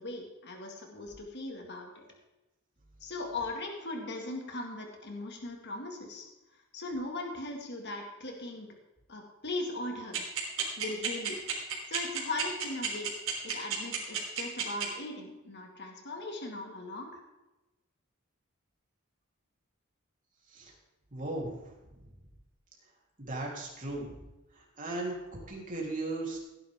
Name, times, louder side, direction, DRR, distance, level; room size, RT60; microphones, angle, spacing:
voice 1, 0.0-2.0 3.0-6.3 6.7-8.7 9.1-10.5 10.8-13.1 13.4-17.2, left 2 dB, 55° left, 2 dB, 2.1 m, -39 dB
sound 1, 10.1-14.8, right 9 dB, 65° right, 3.6 m, -31 dB
voice 2, 21.1-21.7 23.2-24.1 24.5-26.4, right 2 dB, 40° right, -2 dB, 3.6 m, -37 dB
17.0 x 10.5 x 3.7 m, 1.0 s
head